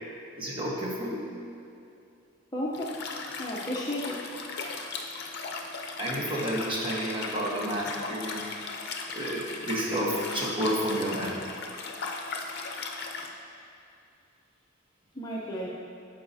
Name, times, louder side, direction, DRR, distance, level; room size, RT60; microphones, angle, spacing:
voice 1, 0.4-1.3 6.0-8.4 9.1-11.4, equal, 25° right, -5 dB, 1.2 m, -30 dB
voice 2, 2.5-3.1 3.4-4.3 15.2-15.7, equal, 20° left, -4 dB, 0.7 m, -33 dB
Liquid, 2.7-13.3, left 4 dB, 55° left, 0.6 m, -37 dB
12.0 x 4.8 x 2.7 m, 2.6 s
head